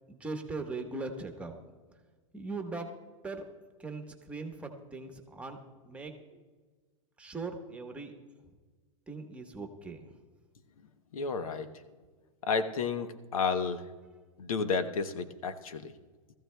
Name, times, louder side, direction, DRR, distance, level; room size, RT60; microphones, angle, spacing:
voice 1, 0.1-1.5 2.3-2.9 3.2-3.4 3.8-5.6 5.8-6.4 7.2-8.1 9.1-10.0, right 3 dB, 5° right, 3 dB, 1.2 m, -40 dB
voice 2, 11.1-11.7 12.4-13.8 14.4-15.9, left 5 dB, 90° left, 11 dB, 1.0 m, -31 dB
20.0 x 14.5 x 2.3 m, 1.4 s
hypercardioid pair, 130°, 18 cm